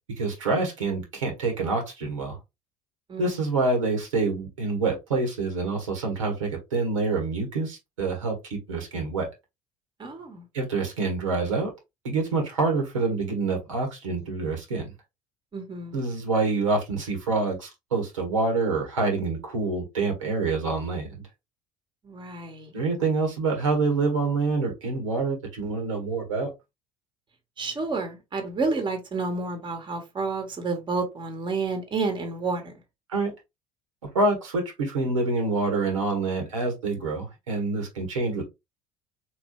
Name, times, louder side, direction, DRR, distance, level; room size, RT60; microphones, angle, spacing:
voice 1, 0.2-2.4 3.2-9.3 10.5-11.7 12.0-14.9 15.9-21.2 22.7-26.5 33.1-33.3 34.1-38.4, right 3 dB, 75° right, 1.4 m, -26 dB
voice 2, 10.0-10.4 15.5-16.0 22.0-22.7 27.6-32.7, right 3 dB, 30° right, 1.3 m, -30 dB
4.0 x 3.1 x 3.0 m
figure-of-eight pair, 60°, 17 cm